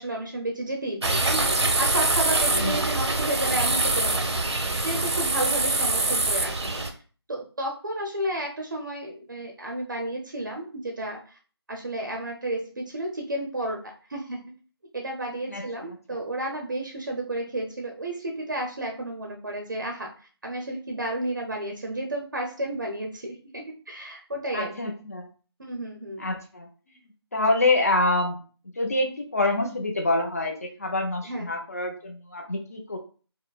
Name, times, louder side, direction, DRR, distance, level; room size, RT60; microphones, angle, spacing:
voice 1, 0.0-4.5 4.8-6.8 7.3-11.2 11.7-14.4 14.9-20.1 20.4-24.7 25.6-26.3 31.2-31.5, right 1 dB, 50° right, 1 dB, 0.6 m, -32 dB
sound 1, 1.0-6.9, right 2 dB, 85° right, 0.8 m, -24 dB
voice 2, 2.5-2.8 15.5-15.7 16.1-16.2 24.5-25.3 26.2-26.7 27.3-28.4 28.8-33.0, left 2 dB, 35° left, 2 dB, 0.6 m, -26 dB
4.7 x 2.1 x 2.3 m, 0.38 s
figure-of-eight pair, 175°, 14 cm